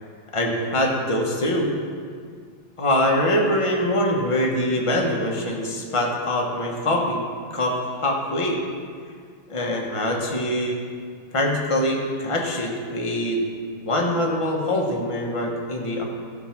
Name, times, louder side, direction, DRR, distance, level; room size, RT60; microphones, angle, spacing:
voice 1, 0.3-1.7 2.8-7.2 7.5-8.6 9.5-10.8 11.3-13.4 13.8-16.0, left 1 dB, 30° left, 0 dB, 0.6 m, -23 dB
14.0 x 4.6 x 5.9 m, 2.1 s
omnidirectional pair, 2.3 m